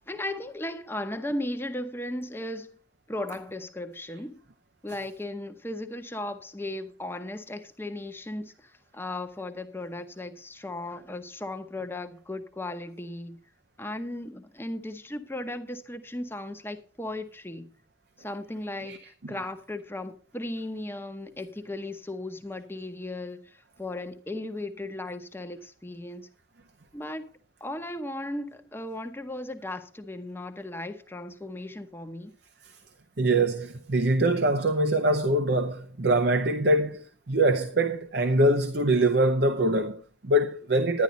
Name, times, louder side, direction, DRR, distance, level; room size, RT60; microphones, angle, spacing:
voice 1, 0.1-2.8 3.1-4.4 4.8-13.4 13.8-17.7 18.2-26.3 26.9-27.3 27.6-32.3, left 1 dB, 10° left, 0.7 m, -36 dB
voice 2, 33.2-41.0, right 1 dB, 55° right, 0.7 m, -24 dB
10.5 x 10.5 x 4.0 m
head